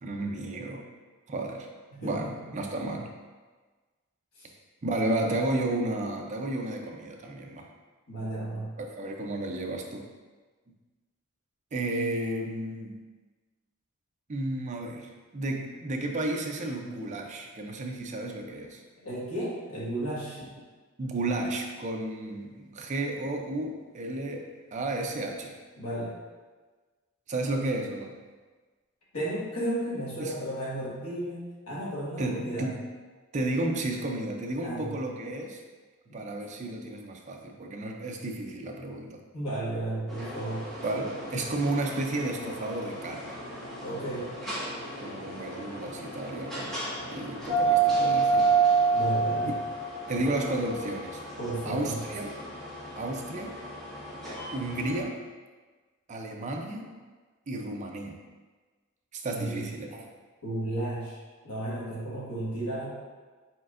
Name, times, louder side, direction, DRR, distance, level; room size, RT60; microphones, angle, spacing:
voice 1, 0.0-0.8 1.3-1.7 2.0-3.1 4.8-7.7 8.8-10.1 11.7-13.0 14.3-18.8 21.0-25.6 27.3-28.1 30.2-30.3 32.2-32.8 33.3-35.6 36.1-39.2 40.8-43.4 45.0-46.8 47.0-48.5 49.4-49.5 50.1-51.2 51.6-52.3 53.0-53.6 54.5-55.2 56.1-56.9 57.5-58.2 59.1-60.1, right 2 dB, 35° right, 2 dB, 0.4 m, -32 dB
voice 2, 1.9-2.3 4.4-4.5 8.1-8.7 18.2-18.3 19.0-20.4 25.8-26.1 29.1-32.7 34.6-34.9 36.1-36.2 39.3-40.7 43.8-44.3 48.9-49.5 51.4-52.0 59.3-59.7 60.4-61.2 61.4-62.9, right 1 dB, 75° left, -7 dB, 1.4 m, -33 dB
sound 1, 40.1-55.0, right 4 dB, ahead, 1.1 m, -30 dB
4.4 x 4.1 x 2.5 m, 1.4 s
head